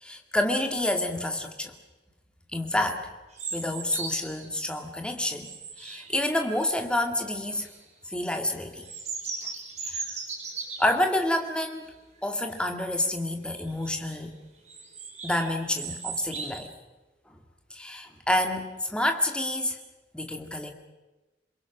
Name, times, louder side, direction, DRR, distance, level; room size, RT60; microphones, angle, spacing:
voice 1, 0.0-1.7 2.5-3.1 3.5-5.5 5.8-7.7 8.1-8.9 9.8-10.0 10.8-11.9 12.2-14.4 15.2-16.7 17.7-19.8 20.1-20.7, left 1 dB, 5° left, 5 dB, 2.1 m, -28 dB
sound 1, 3.3-4.5 5.0-6.6 7.3-7.8 8.2-11.0 11.6-11.8 12.2-12.3 12.6-13.0 13.6-14.2 14.7-16.5, right 4 dB, 40° right, 4.1 m, -38 dB
27.5 x 22.0 x 6.1 m, 1.1 s
head